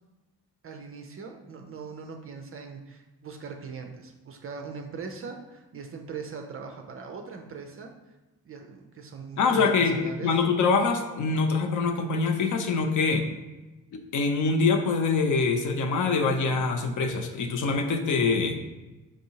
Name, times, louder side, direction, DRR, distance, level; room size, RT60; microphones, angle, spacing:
voice 1, 0.6-7.9 8.4-10.3, right 5 dB, 30° right, 4 dB, 0.5 m, -40 dB
voice 2, 9.4-13.2 13.9-18.6, left 4 dB, 40° left, 4 dB, 0.6 m, -24 dB
6.0 x 2.6 x 2.8 m, 1.1 s
figure-of-eight pair, 45°, 47 cm